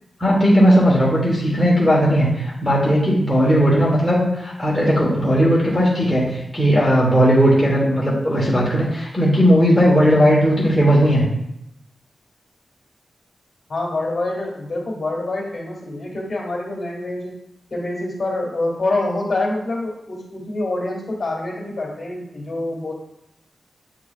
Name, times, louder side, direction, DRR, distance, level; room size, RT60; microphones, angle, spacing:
voice 1, 0.2-11.3, equal, 10° left, -6 dB, 1.3 m, -16 dB
voice 2, 13.7-17.3 17.7-22.9, left 2 dB, 40° left, -4 dB, 2.1 m, -26 dB
8.4 x 4.7 x 2.4 m, 0.83 s
wide cardioid pair, 130°, 0 cm